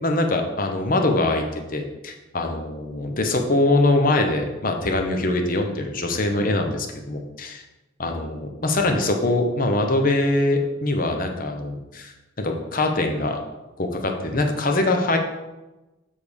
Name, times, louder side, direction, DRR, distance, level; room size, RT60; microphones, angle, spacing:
voice 1, 0.0-1.4 1.7-7.6 8.0-12.1 12.4-13.4 13.8-15.2, left 2 dB, 45° left, 4 dB, 1.0 m, -23 dB
7.5 x 3.6 x 6.4 m, 1.1 s
head